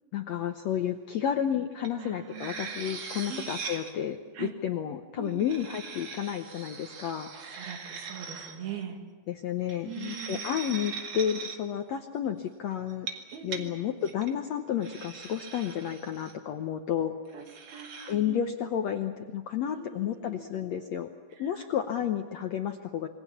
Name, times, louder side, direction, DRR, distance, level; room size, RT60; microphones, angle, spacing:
voice 1, 0.1-7.3 9.3-13.1 13.4-17.1 18.1-21.1 21.4-23.1, left 9 dB, 75° left, 6 dB, 1.6 m, -31 dB
sound 1, 1.8-1.9 2.2-3.9 5.2-8.6 9.7-11.6 12.9-13.6 14.0-14.3 14.8-16.3 17.4-18.1, right 5 dB, 45° right, 2.8 m, -40 dB
voice 2, 2.0-2.8 3.3-3.5 4.3-4.5 5.2-5.5 7.3-9.0 9.9-10.5 13.3-13.7 17.3-18.4 19.7-21.0 21.3-21.7, right 9 dB, 80° right, 3 dB, 4.2 m, -42 dB
27.0 x 23.0 x 7.2 m, 1.4 s
omnidirectional pair, 4.2 m